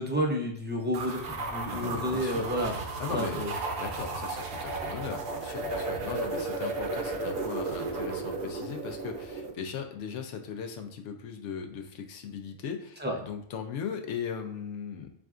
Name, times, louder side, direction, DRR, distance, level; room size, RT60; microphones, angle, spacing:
voice 1, 0.0-2.8 3.1-3.5 13.0-13.2, equal, 15° right, 0 dB, 0.4 m, -30 dB
sound 1, 0.9-9.5, right 3 dB, 60° right, 0.8 m, -34 dB
voice 2, 1.7-2.5 3.0-3.5 3.8-15.1, left 7 dB, 80° left, 5 dB, 0.9 m, -38 dB
7.2 x 2.5 x 2.4 m, 0.64 s
omnidirectional pair, 1.2 m